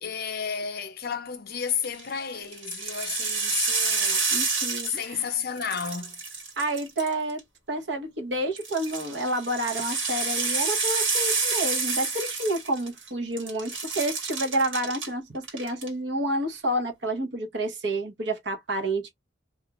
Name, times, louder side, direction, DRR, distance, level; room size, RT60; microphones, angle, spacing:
voice 1, 0.0-4.2 4.8-6.2, left 7 dB, 55° left, 0.6 m, -32 dB
sound 1, 1.7-2.0 2.5-5.3 5.6-7.4 8.6-13.1 13.4-15.1 15.4-15.9, right 4 dB, 90° right, 1.5 m, -28 dB
voice 2, 4.3-5.3 6.6-7.4 7.7-19.1, right 1 dB, 65° right, 1.0 m, -29 dB
2.4 x 2.3 x 2.9 m
head